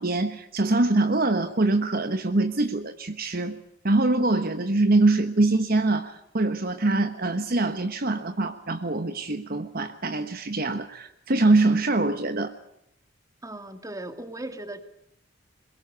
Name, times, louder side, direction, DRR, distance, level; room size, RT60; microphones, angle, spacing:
voice 1, 0.0-12.5, right 2 dB, 50° right, 9 dB, 1.3 m, -24 dB
voice 2, 13.4-14.8, right 1 dB, 15° right, 8 dB, 2.3 m, -37 dB
23.0 x 22.0 x 6.9 m, 0.78 s
head